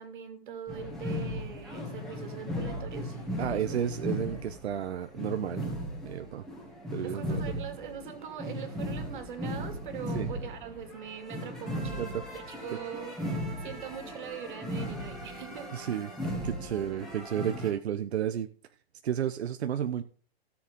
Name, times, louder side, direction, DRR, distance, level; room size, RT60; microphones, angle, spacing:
voice 1, 0.0-3.8 7.0-13.2 13.6-15.8, right 8 dB, 50° right, 7 dB, 2.7 m, -42 dB
sound 1, 0.7-17.7, equal, ahead, 2.1 m, -37 dB
voice 2, 3.4-5.6 6.0-6.5 6.9-7.4 10.1-10.3 12.0-12.2 15.7-18.5 19.0-20.0, right 10 dB, 85° right, 10 dB, 0.9 m, -32 dB
17.0 x 7.2 x 3.7 m, 0.41 s
hypercardioid pair, 180°, 32 cm